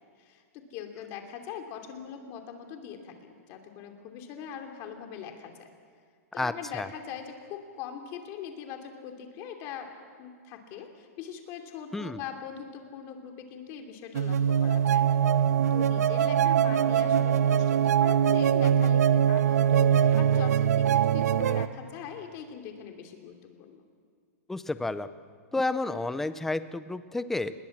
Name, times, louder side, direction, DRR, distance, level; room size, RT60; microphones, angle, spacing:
voice 1, 0.2-5.7 6.3-9.9 10.2-23.8, left 8 dB, 30° left, 5 dB, 2.9 m, -42 dB
voice 2, 6.4-6.9 11.9-12.2 24.5-25.1 25.5-27.6, left 2 dB, 5° left, 13 dB, 0.6 m, -31 dB
sound 1, 14.1-21.7, right 9 dB, 90° right, 0.9 m, -23 dB
28.0 x 21.0 x 7.4 m, 2.1 s
supercardioid pair, 170°, 8 cm